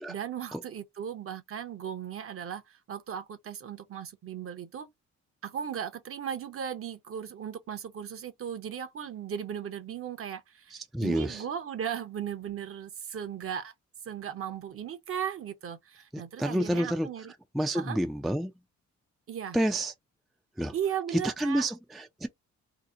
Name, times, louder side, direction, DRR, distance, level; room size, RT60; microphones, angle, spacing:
voice 1, 0.1-4.9 5.4-13.7 14.0-17.3 17.7-18.0 19.3-19.6 20.7-21.7, right 8 dB, 50° right, 0.7 m, -37 dB
voice 2, 10.7-11.5 16.1-17.1 17.5-18.5 19.5-19.9 20.6-20.7 21.1-22.3, equal, ahead, 0.3 m, -29 dB
2.8 x 2.1 x 3.7 m
cardioid pair, 90°, 30 cm